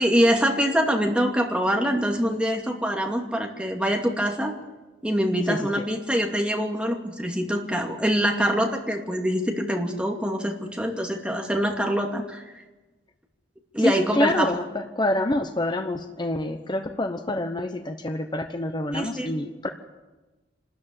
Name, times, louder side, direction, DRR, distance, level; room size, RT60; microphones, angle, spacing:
voice 1, 0.0-4.5 5.0-12.4 13.7-14.5 18.9-19.3, equal, 5° right, 2 dB, 2.5 m, -24 dB
voice 2, 5.5-5.8 13.8-19.7, left 1 dB, 25° left, 7 dB, 0.9 m, -27 dB
26.5 x 13.5 x 9.0 m, 1.2 s
head